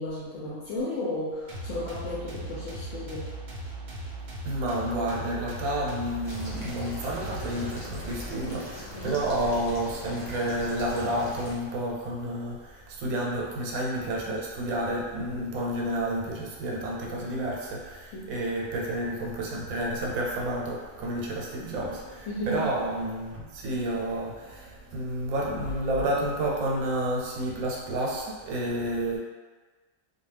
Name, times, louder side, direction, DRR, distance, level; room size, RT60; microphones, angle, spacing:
voice 1, 0.0-3.4 8.9-9.2 18.1-18.3 22.3-22.7, left 1 dB, 70° left, -6 dB, 0.9 m, -34 dB
sound 1, 1.5-8.2, right 2 dB, 65° right, 0.7 m, -38 dB
voice 2, 4.4-29.2, right 1 dB, 85° right, -3 dB, 1.0 m, -30 dB
sound 2, 6.2-11.5, left 1 dB, 35° left, 0.5 m, -40 dB
2.3 x 2.2 x 3.2 m, 1.4 s
omnidirectional pair, 1.4 m